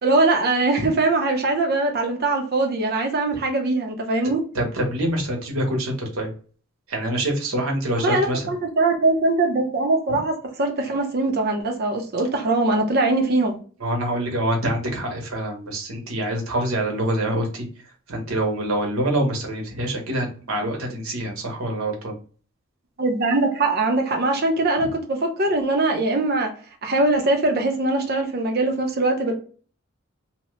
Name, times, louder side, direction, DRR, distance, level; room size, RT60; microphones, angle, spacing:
voice 1, 0.0-4.4 8.0-13.6 23.0-26.5 26.8-29.3, right 2 dB, 50° right, 3 dB, 0.7 m, -21 dB
voice 2, 4.5-6.3 6.9-8.4 10.1-10.2 13.8-17.7 18.1-22.1 24.8-24.9, right 1 dB, 85° right, 1 dB, 1.0 m, -25 dB
2.8 x 2.2 x 3.1 m, 0.40 s
head